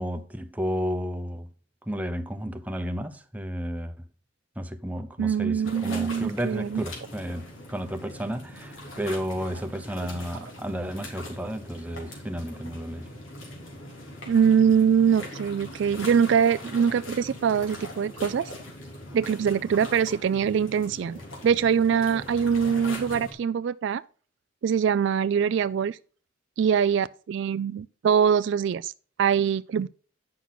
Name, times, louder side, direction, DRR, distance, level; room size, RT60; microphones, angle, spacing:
voice 1, 0.0-1.5 1.9-3.9 4.6-13.1, equal, 10° right, 0.7 m, -32 dB
voice 2, 5.2-6.8 14.3-18.5 19.1-24.0 24.6-26.0 26.6-28.9 29.2-29.9, right 7 dB, 60° right, 0.3 m, -23 dB
sound 1, 5.6-23.3, left 1 dB, 80° left, 3.3 m, -41 dB
9.6 x 6.0 x 4.0 m
head